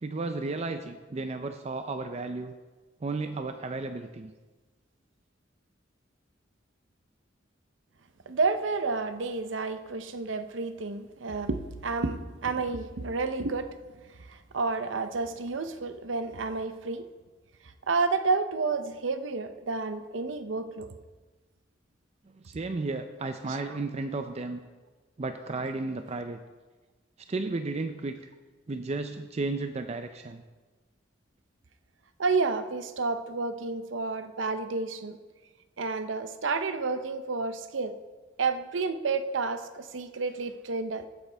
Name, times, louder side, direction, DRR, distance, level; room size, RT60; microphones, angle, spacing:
voice 1, 0.0-2.5 3.0-4.3 22.4-24.6 25.2-26.4 27.3-28.2 28.7-30.4, right 3 dB, 35° right, 8 dB, 0.5 m, -33 dB
voice 2, 8.3-13.7 14.3-17.0 17.9-20.9 23.5-23.6 32.2-35.2 35.8-38.0 38.4-41.1, right 4 dB, 90° right, 10 dB, 0.7 m, -30 dB
15.5 x 8.7 x 3.4 m, 1.3 s
head